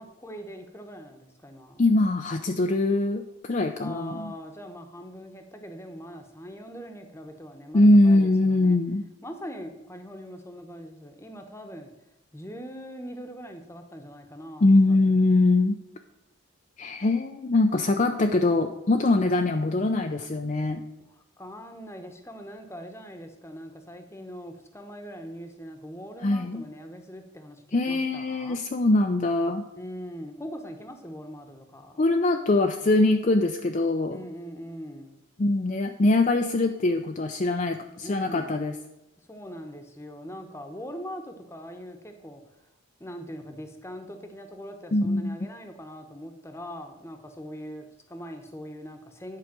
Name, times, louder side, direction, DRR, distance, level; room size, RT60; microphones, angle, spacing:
voice 1, 0.0-1.8 3.8-8.8 9.2-11.9 12.3-15.4 21.1-28.6 29.7-32.0 34.1-35.2 38.0-38.6 39.3-42.4 43.0-49.4, equal, 10° left, 5 dB, 1.0 m, -41 dB
voice 2, 1.8-4.3 7.7-9.0 14.6-15.8 16.8-20.8 26.2-26.7 27.7-29.6 32.0-34.2 35.4-38.7 44.9-45.5, left 2 dB, 35° left, 5 dB, 0.4 m, -22 dB
10.5 x 4.8 x 7.5 m, 0.95 s
head